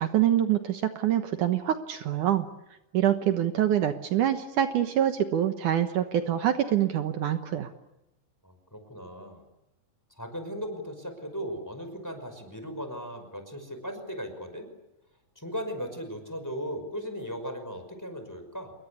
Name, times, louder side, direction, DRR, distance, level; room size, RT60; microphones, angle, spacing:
voice 1, 0.0-2.5 2.9-7.7, right 11 dB, 70° right, 7 dB, 2.6 m, -25 dB
voice 2, 8.4-9.4 10.2-14.7 15.4-18.7, equal, 5° left, 7 dB, 5.3 m, -37 dB
28.5 x 23.0 x 8.5 m, 0.93 s
omnidirectional pair, 3.9 m